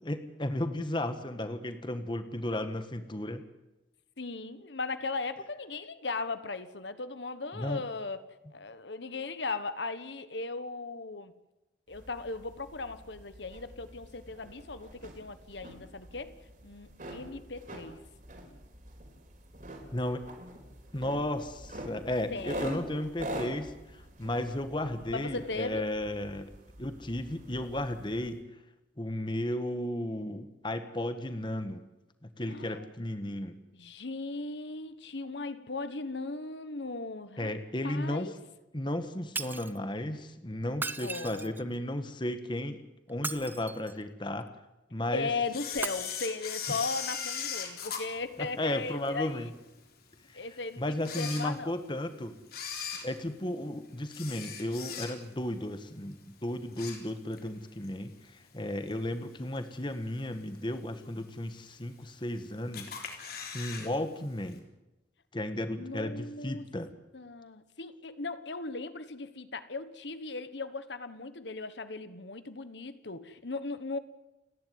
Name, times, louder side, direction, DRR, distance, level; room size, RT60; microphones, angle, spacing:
voice 1, 0.0-3.4 7.5-7.8 19.9-20.2 20.9-26.5 26.8-28.4 29.0-31.8 32.2-33.6 37.4-38.3 38.7-42.8 43.1-44.5 44.9-45.3 48.4-49.5 50.3-50.5 50.8-52.3 53.0-62.9 63.5-64.6 65.3-66.9, left 1 dB, 25° left, 9 dB, 1.5 m, -34 dB
voice 2, 4.2-8.2 8.5-11.3 11.9-16.3 16.6-18.0 22.3-22.6 24.9-25.9 32.4-32.9 33.7-37.5 37.8-38.3 41.0-41.7 45.1-49.5 50.3-51.7 65.7-66.6 67.1-74.0, left 3 dB, 75° left, 12 dB, 1.4 m, -37 dB
sound 1, 11.9-28.4, right 1 dB, 45° right, 4.4 m, -45 dB
Shatter, 39.4-39.8 40.7-41.7 43.1-44.0 45.7-45.9, right 3 dB, 10° right, 0.7 m, -37 dB
Camera, 45.5-49.1 49.6-49.7 50.4-50.5 50.9-52.0 52.4-55.5 55.8-56.1 56.5-57.5 57.8-57.9 58.9-59.0 59.6-60.0 60.4-60.5 60.7-60.8 60.9-61.0 61.8-62.3 62.7-63.9 64.2-64.3 64.5-64.6, left 7 dB, 55° left, 3.8 m, -39 dB
29.5 x 11.0 x 9.5 m, 1.0 s
head